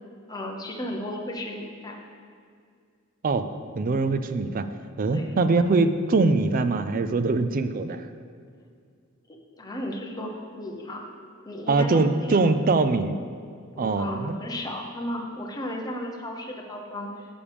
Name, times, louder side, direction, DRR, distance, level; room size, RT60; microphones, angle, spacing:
voice 1, 0.3-2.0 5.1-5.3 9.3-11.1 11.4-12.4 13.8-17.3, left 1 dB, 20° left, 1 dB, 0.9 m, -34 dB
voice 2, 3.8-4.7 5.0-8.1 11.7-13.1 13.8-14.4, right 3 dB, 40° right, 10 dB, 0.4 m, -23 dB
12.0 x 7.0 x 3.5 m, 2.2 s
head